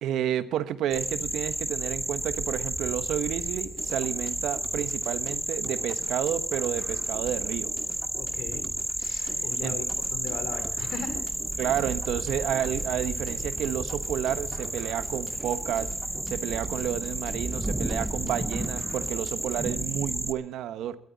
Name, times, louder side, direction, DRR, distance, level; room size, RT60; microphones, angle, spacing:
voice 1, 0.0-7.7 9.6-9.8 11.6-15.9 16.3-21.0, right 11 dB, 85° right, 12 dB, 1.2 m, -31 dB
sound 1, 0.9-20.3, right 1 dB, 10° right, 0.9 m, -32 dB
sound 2, 3.8-19.8, right 5 dB, 45° right, 2.3 m, -45 dB
voice 2, 8.2-8.7 9.0-9.8 10.1-11.2, left 5 dB, 75° left, 9 dB, 3.9 m, -38 dB
21.0 x 13.5 x 4.1 m, 0.67 s
cardioid pair, 90°, 0 cm